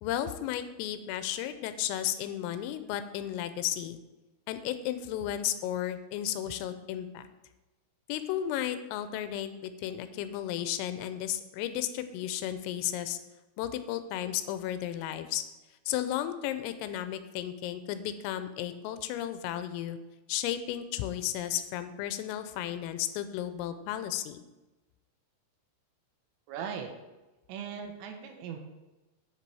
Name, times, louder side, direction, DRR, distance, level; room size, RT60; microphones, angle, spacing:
voice 1, 0.0-4.0 4.5-7.3 8.1-13.2 13.6-15.4 15.9-20.0 20.3-24.4, left 11 dB, 90° left, 10 dB, 3.3 m, -34 dB
voice 2, 26.5-26.9 27.5-28.6, right 7 dB, 80° right, 4 dB, 3.4 m, -38 dB
8.0 x 6.8 x 4.7 m, 1.1 s
omnidirectional pair, 5.8 m